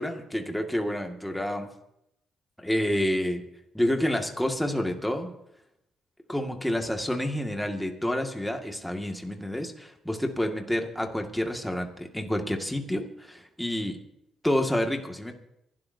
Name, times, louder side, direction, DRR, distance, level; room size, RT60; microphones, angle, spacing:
voice 1, 0.0-1.7 2.6-3.4 3.7-5.3 6.3-14.0 14.4-15.3, left 1 dB, 5° left, 3 dB, 2.0 m, -29 dB
27.0 x 12.0 x 2.8 m, 0.81 s
cardioid pair, 90°, 0 cm